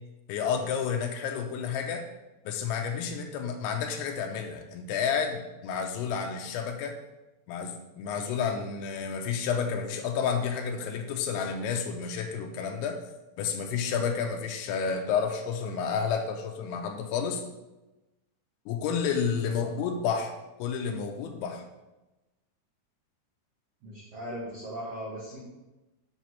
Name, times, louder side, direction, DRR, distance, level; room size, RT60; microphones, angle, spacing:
voice 1, 0.3-2.0 2.5-7.0 7.5-13.0 13.4-17.4 18.7-20.3 20.6-21.6, left 6 dB, 85° left, 3 dB, 2.6 m, -30 dB
voice 2, 23.8-25.4, equal, 70° right, -6 dB, 1.5 m, -38 dB
7.4 x 3.1 x 5.6 m, 1.0 s
omnidirectional pair, 4.6 m